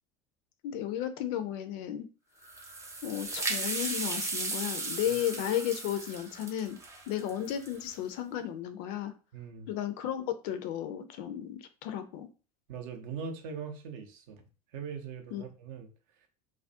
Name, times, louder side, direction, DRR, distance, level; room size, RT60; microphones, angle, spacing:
voice 1, 0.6-2.1 3.0-6.8 7.1-9.1 9.7-12.3 15.3-15.4, left 11 dB, 50° left, 10 dB, 0.4 m, -34 dB
sound 1, 2.4-7.9, right 2 dB, 15° right, 0.6 m, -36 dB
voice 2, 9.3-9.7 12.7-14.4 14.7-15.9, right 6 dB, 60° right, 5 dB, 0.5 m, -41 dB
2.3 x 2.0 x 2.6 m, 0.36 s
figure-of-eight pair, 75°, 20 cm